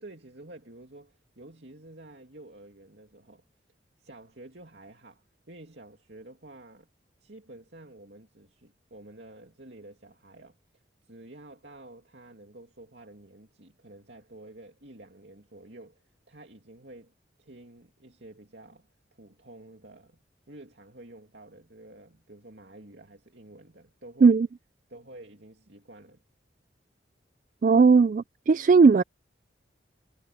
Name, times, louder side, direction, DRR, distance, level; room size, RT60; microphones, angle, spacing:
voice 1, 0.0-3.4 4.0-6.9 7.2-17.1 17.4-20.2 20.5-24.4 24.9-26.2, right 1 dB, 65° right, 2.6 m, -50 dB
voice 2, 27.6-29.0, right 4 dB, 45° right, 0.3 m, -18 dB
head